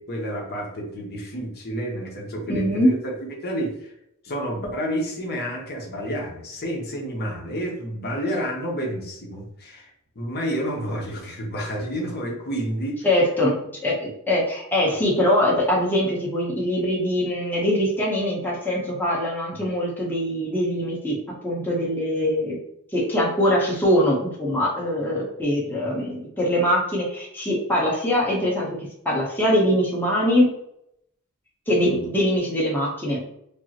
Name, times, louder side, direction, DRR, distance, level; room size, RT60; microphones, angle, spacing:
voice 1, 0.0-3.9 4.2-13.1 14.8-14.9 25.6-25.8 31.9-32.1, equal, 45° left, -1 dB, 1.0 m, -30 dB
voice 2, 2.5-2.9 13.0-22.6 22.9-28.8 29.0-30.5 31.7-33.2, equal, 10° left, -5 dB, 0.9 m, -22 dB
5.2 x 2.1 x 2.9 m, 0.75 s
head